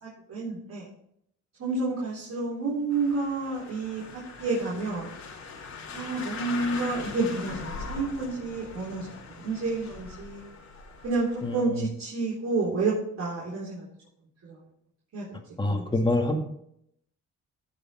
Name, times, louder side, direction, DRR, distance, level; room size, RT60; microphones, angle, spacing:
voice 1, 0.0-0.8 1.6-5.1 5.9-10.5 11.0-13.9 14.4-14.6 15.1-15.3 15.7-15.9, right 3 dB, 60° right, -7 dB, 3.8 m, -30 dB
sound 1, 2.9-11.6, left 4 dB, 65° left, 2.6 m, -41 dB
voice 2, 11.4-11.9 15.6-16.4, left 2 dB, 15° left, 3 dB, 1.8 m, -26 dB
16.0 x 5.4 x 4.4 m, 0.72 s
cardioid pair, 90°, 30 cm